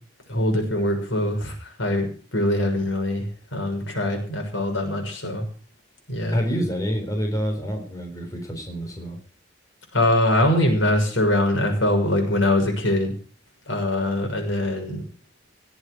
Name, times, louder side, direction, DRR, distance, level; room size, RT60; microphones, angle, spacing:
voice 1, 0.3-2.1 2.3-5.5 6.1-6.4 9.9-13.1 13.7-15.0, left 1 dB, 90° left, 2 dB, 6.5 m, -23 dB
voice 2, 6.3-9.2, equal, 20° left, 2 dB, 3.9 m, -27 dB
18.5 x 8.1 x 7.9 m, 0.41 s
head